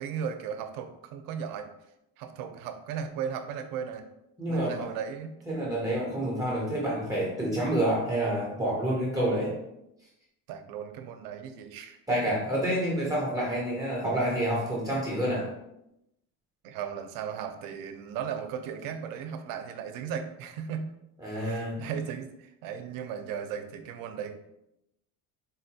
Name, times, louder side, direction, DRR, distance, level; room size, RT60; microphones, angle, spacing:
voice 1, 0.0-1.7 2.2-4.0 4.5-5.3 10.5-12.0 16.6-20.9 21.4-24.5, right 7 dB, 75° right, 7 dB, 0.5 m, -36 dB
voice 2, 4.4-4.9 5.5-9.6 12.1-15.5 21.2-21.8, right 1 dB, 10° right, -5 dB, 0.4 m, -28 dB
3.8 x 2.2 x 2.7 m, 0.84 s
cardioid pair, 160°, 35 cm